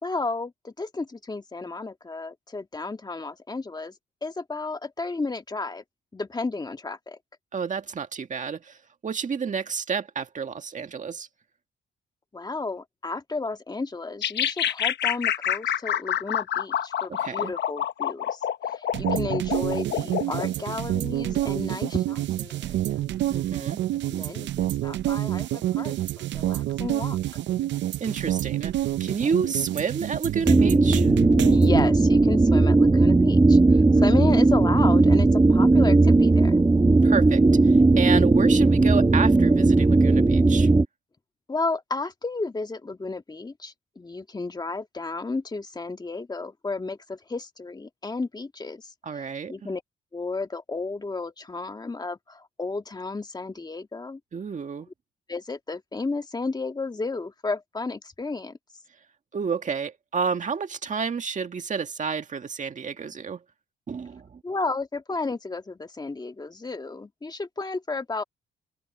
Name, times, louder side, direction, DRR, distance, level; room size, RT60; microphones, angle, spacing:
voice 1, 0.0-3.9 4.2-5.8 6.1-7.2 12.3-22.9 24.1-27.2 31.5-36.6 41.5-49.8 50.1-54.2 55.3-58.6 64.4-68.2, left 3 dB, 20° left, 1.6 m, -33 dB
voice 2, 7.5-8.8 9.0-11.3 17.1-17.5 23.3-23.8 28.0-31.1 37.0-40.7 49.0-49.7 54.3-54.9 59.3-63.4 63.9-64.4, right 5 dB, 40° right, 1.9 m, -30 dB
sound 1, 14.2-20.5, left 10 dB, 60° left, 1.0 m, -27 dB
sound 2, 18.9-31.8, right 13 dB, 65° right, 0.5 m, -28 dB
sound 3, 30.5-40.9, right 3 dB, 15° right, 1.2 m, -17 dB
open air
cardioid pair, 90°, 20 cm